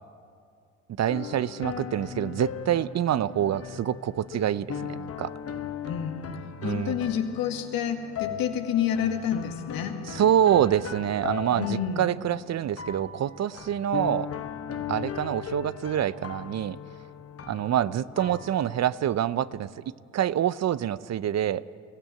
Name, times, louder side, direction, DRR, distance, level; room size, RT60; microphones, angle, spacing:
voice 1, 1.0-5.3 6.6-6.9 10.1-14.3 14.9-16.8 17.5-21.6, right 10 dB, 45° right, 17 dB, 0.7 m, -26 dB
sound 1, 1.1-19.7, left 8 dB, 40° left, 1.1 m, -38 dB
voice 2, 5.8-6.3 6.6-10.0 11.5-12.1, left 8 dB, 70° left, 6 dB, 2.0 m, -29 dB
22.5 x 16.0 x 9.1 m, 2.3 s
hypercardioid pair, 55°, 37 cm